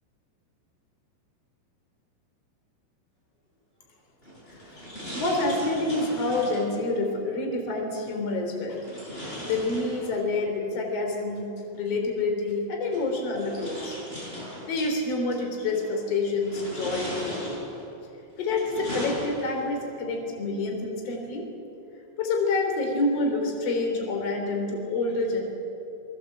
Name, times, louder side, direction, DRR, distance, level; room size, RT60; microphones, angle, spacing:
sound 1, 4.2-6.8 8.8-10.4 11.8-11.9 12.9-14.9 15.6-16.0 16.4-17.9 18.4-19.8, equal, 10° left, 7.0 m, -38 dB
voice 1, 5.1-8.8 9.2-14.0 14.7-17.6 18.4-21.4 22.2-25.4, left 2 dB, 35° left, 2 dB, 4.2 m, -28 dB
27.0 x 20.5 x 8.1 m, 2.8 s
omnidirectional pair, 6.0 m